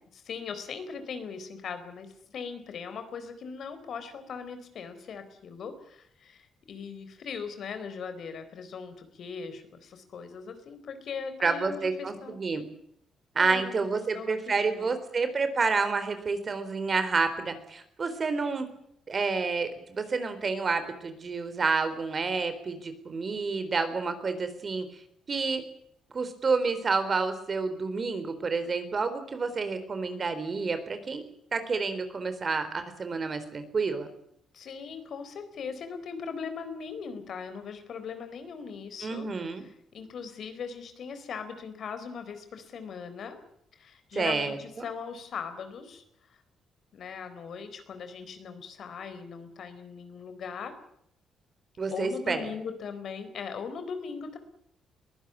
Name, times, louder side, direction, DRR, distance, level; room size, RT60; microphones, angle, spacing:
voice 1, 0.1-12.4 13.4-14.9 34.5-43.4 43.7-46.0 46.9-50.8 51.9-54.4, left 6 dB, 60° left, 10 dB, 4.2 m, -39 dB
voice 2, 11.4-12.6 13.4-18.7 19.1-24.9 25.3-25.6 26.1-31.2 31.5-34.1 39.0-39.6 44.2-44.6 51.8-52.5, right 4 dB, 40° right, 10 dB, 4.0 m, -29 dB
22.0 x 15.5 x 9.9 m, 0.72 s
cardioid pair, 90°, 0 cm